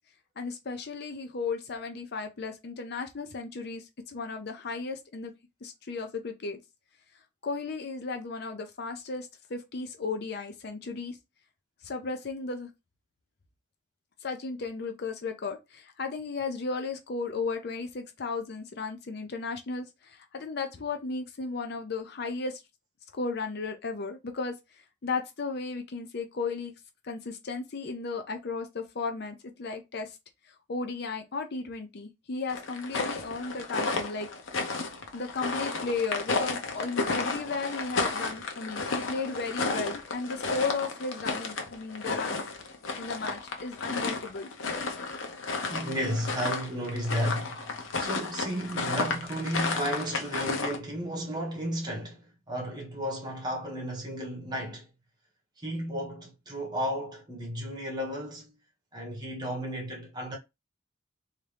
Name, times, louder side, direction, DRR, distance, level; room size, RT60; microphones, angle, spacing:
voice 1, 0.4-5.3 5.6-6.6 7.4-11.2 11.8-12.7 14.2-22.6 23.1-24.5 25.0-26.7 27.0-30.2 30.5-34.3 34.5-34.6 35.1-42.4 43.0-44.5, left 4 dB, 55° left, 0.6 m, -35 dB
sound 1, 32.5-50.8, left 3 dB, 90° left, 0.8 m, -32 dB
voice 2, 45.7-54.9 55.6-58.5 58.9-60.4, equal, 20° right, 1.3 m, -33 dB
3.6 x 2.8 x 3.3 m
head